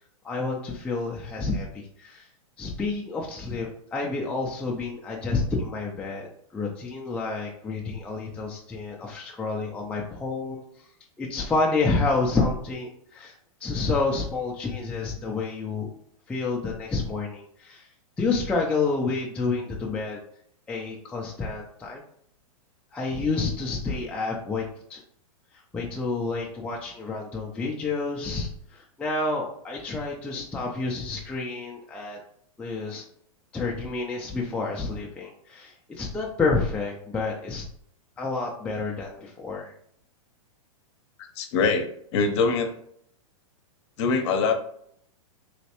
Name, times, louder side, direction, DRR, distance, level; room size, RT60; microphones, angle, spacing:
voice 1, 0.2-2.2 2.6-10.6 11.2-13.3 13.6-15.9 16.3-17.9 18.2-20.2 20.7-22.0 22.9-24.6 24.9-25.0 25.7-32.2 32.6-33.0 33.5-37.7 38.2-39.7, left 3 dB, 5° left, -2 dB, 0.4 m, -29 dB
voice 2, 41.4-42.7 44.0-44.5, left 4 dB, 55° left, 6 dB, 0.7 m, -23 dB
3.1 x 3.0 x 2.9 m, 0.66 s
hypercardioid pair, 135°, 18 cm